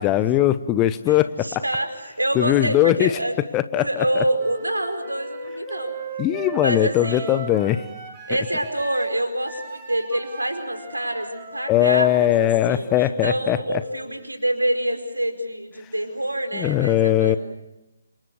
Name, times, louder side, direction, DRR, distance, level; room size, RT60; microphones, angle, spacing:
voice 1, 0.0-1.6 2.3-3.2 3.5-4.2 6.2-7.8 11.7-13.8 16.5-17.4, left 13 dB, 20° left, 13 dB, 0.9 m, -20 dB
voice 2, 1.1-3.4 3.8-5.9 6.6-7.4 8.3-17.4, right 1 dB, 85° right, 7 dB, 4.7 m, -26 dB
Wind instrument woodwind instrument, 4.4-14.2, right 4 dB, 10° right, 6.9 m, -38 dB
29.0 x 27.0 x 6.7 m, 0.91 s
figure-of-eight pair, 140°, 0 cm